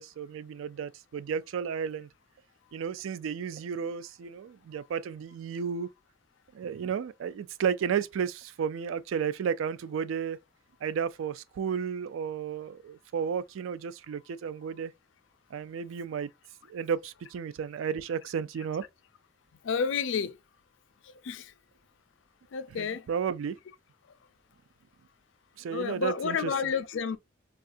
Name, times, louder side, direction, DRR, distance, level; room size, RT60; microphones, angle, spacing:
voice 1, 0.0-2.1 2.7-5.9 6.5-10.4 10.8-14.9 15.5-16.3 16.7-18.9 22.8-23.6 25.6-26.6, right 7 dB, 90° right, 0.3 m, -33 dB
voice 2, 19.6-20.3 21.2-21.5 22.5-23.0 25.7-27.2, left 6 dB, 70° left, 0.4 m, -30 dB
3.4 x 2.4 x 2.5 m
head